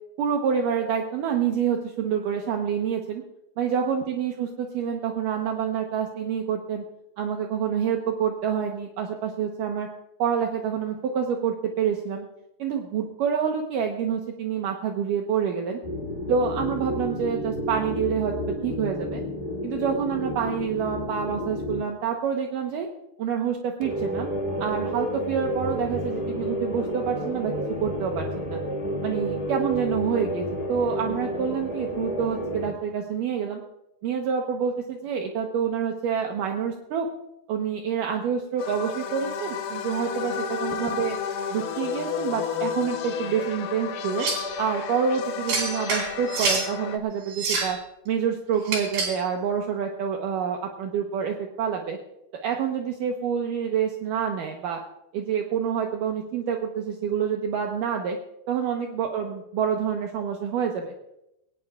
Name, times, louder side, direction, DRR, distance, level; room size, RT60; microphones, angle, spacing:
voice 1, 0.2-3.2 3.6-6.8 7.2-9.9 10.2-12.3 12.6-15.8 16.3-19.2 19.6-22.9 23.2-24.3 24.6-27.5 27.8-28.6 29.0-33.6 34.0-37.1 37.5-41.2 41.5-44.3 44.6-47.8 48.1-52.0 52.4-54.8 55.1-58.2 58.5-60.9, right 7 dB, 70° right, 2 dB, 2.5 m, -27 dB
sound 1, 15.8-21.8 23.8-32.7, equal, 20° left, 1.6 m, -30 dB
sound 2, 38.6-47.0, left 7 dB, 85° left, 2.9 m, -32 dB
sound 3, 44.2-44.5 45.5-46.7 47.3-47.8 48.7-49.2, right 3 dB, 90° right, 5.2 m, -27 dB
21.0 x 18.5 x 2.4 m, 0.85 s
omnidirectional pair, 4.3 m